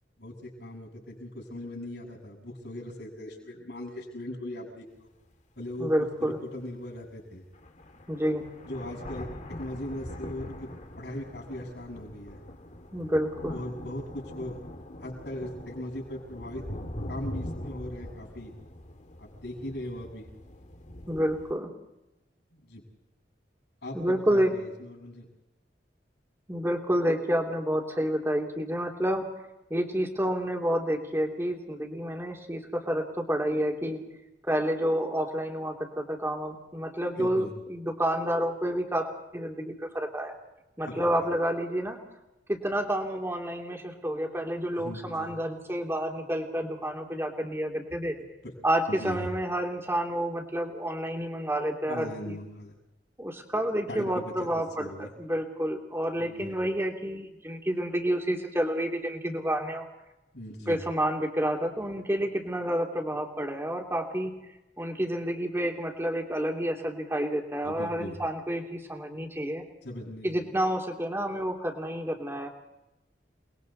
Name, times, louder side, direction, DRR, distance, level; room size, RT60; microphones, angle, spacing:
voice 1, 0.2-5.1 5.6-5.9 6.2-7.4 8.7-10.7 11.0-12.4 13.5-14.6 15.0-16.6 17.1-18.5 19.2-20.3 22.5-22.8 23.8-25.2 37.2-37.5 40.8-41.3 44.8-45.3 48.4-48.5 48.9-49.3 51.9-52.7 53.9-54.5 54.8-55.1 56.2-56.6 60.3-60.8 67.6-68.1 69.8-70.3, left 1 dB, 65° left, -6 dB, 6.3 m, -39 dB
sound 1, 5.0-5.1 5.7-5.8 7.1-7.2 7.5-21.5, left 1 dB, 45° left, 2.1 m, -42 dB
voice 2, 5.8-6.4 8.1-8.4 12.9-13.6 21.1-21.7 23.9-24.5 26.5-29.2 29.7-34.0 34.4-39.1 39.3-40.3 40.8-42.0 42.5-48.2 48.6-52.4 53.2-59.8 60.7-64.3 64.8-69.6 70.2-72.5, equal, 15° right, 2 dB, 3.0 m, -29 dB
29.0 x 21.5 x 4.2 m, 0.95 s
head